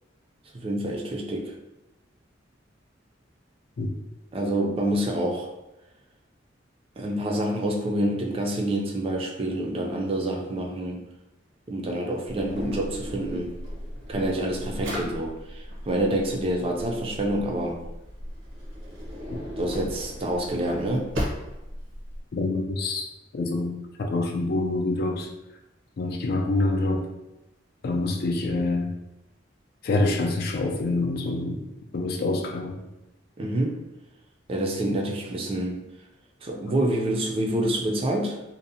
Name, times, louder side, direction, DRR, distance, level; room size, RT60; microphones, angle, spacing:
voice 1, 0.5-1.5 4.3-5.5 7.0-11.0 11.7-13.5 14.1-17.8 19.6-21.1 33.4-33.8 34.5-35.8 36.4-38.4, right 1 dB, 30° right, 0 dB, 0.3 m, -27 dB
Drawer open or close, 12.3-22.2, equal, 80° right, 0.7 m, -36 dB
voice 2, 22.3-23.1 23.3-23.7 24.0-25.3 26.0-27.1 27.8-28.9 29.8-31.6 31.9-32.8, left 2 dB, 55° left, 2 dB, 0.4 m, -26 dB
2.6 x 2.0 x 2.6 m, 0.97 s
head